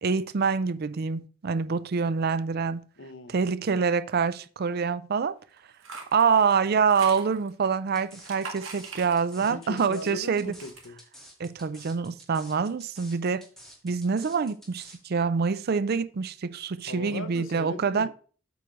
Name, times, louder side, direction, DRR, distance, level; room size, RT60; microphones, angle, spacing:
voice 1, 0.0-2.8 3.3-5.3 6.1-10.5 11.4-13.4 13.8-18.1, right 5 dB, 50° right, 0.5 m, -26 dB
voice 2, 3.0-3.4 9.4-11.0 16.9-18.1, left 3 dB, 85° left, 0.8 m, -39 dB
sound 1, 5.6-7.7 8.1-9.5 9.9-10.9, right 4 dB, 75° right, 1.9 m, -42 dB
sound 2, 8.0-15.0, equal, ahead, 2.2 m, -50 dB
7.9 x 4.7 x 5.1 m
head